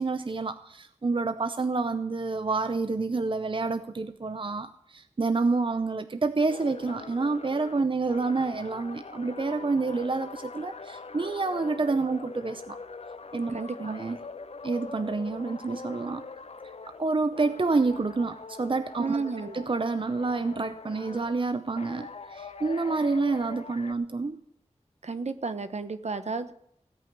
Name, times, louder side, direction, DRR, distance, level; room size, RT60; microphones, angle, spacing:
voice 1, 0.0-12.8 13.3-14.2 14.6-16.2 17.0-19.2 19.5-24.4, right 3 dB, 45° right, 11 dB, 0.7 m, -28 dB
sound 1, 6.5-17.0 17.3-21.3 21.8-23.9, left 4 dB, 60° left, 0.7 m, -43 dB
voice 2, 13.5-13.9 19.0-19.6 25.0-26.5, right 4 dB, 70° right, 11 dB, 1.1 m, -32 dB
17.0 x 5.6 x 9.9 m, 0.72 s
wide cardioid pair, 65°, 12 cm